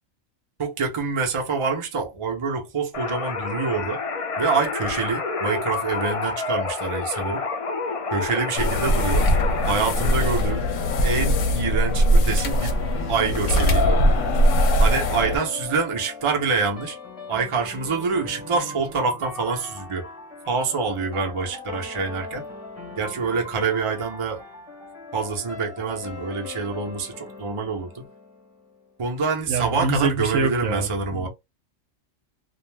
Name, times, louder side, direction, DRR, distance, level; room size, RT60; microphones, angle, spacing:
voice 1, 0.6-4.0 4.4-7.4 8.1-9.3 9.7-10.7 11.0-12.8 13.1-14.0 14.8-17.0 17.3-20.1 20.5-22.4 23.0-24.4 25.1-28.0 29.0-31.3, right 4 dB, 35° right, 0.5 m, -26 dB
sound 1, 2.9-10.1, left 4 dB, 50° left, 0.4 m, -29 dB
sound 2, 8.6-15.4, equal, 70° left, 0.9 m, -20 dB
sound 3, 9.9-28.9, left 3 dB, 30° left, 0.9 m, -39 dB
voice 2, 29.5-31.3, right 3 dB, 75° right, 1.0 m, -25 dB
2.4 x 2.0 x 3.2 m
omnidirectional pair, 1.4 m